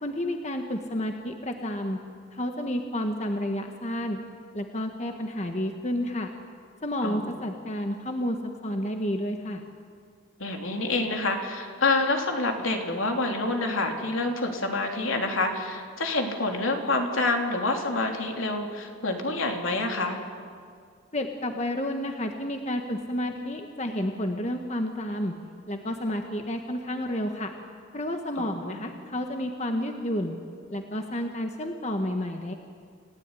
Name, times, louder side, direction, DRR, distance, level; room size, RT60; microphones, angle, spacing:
voice 1, 0.0-2.0 2.3-4.2 4.5-6.3 6.8-8.4 8.6-9.6 21.1-25.3 25.7-27.5 27.9-30.4 30.7-32.5, left 1 dB, 35° left, 4 dB, 1.5 m, -30 dB
voice 2, 10.4-20.2 28.4-28.8, left 2 dB, 75° left, 3 dB, 3.4 m, -27 dB
29.5 x 16.5 x 9.8 m, 2.3 s
head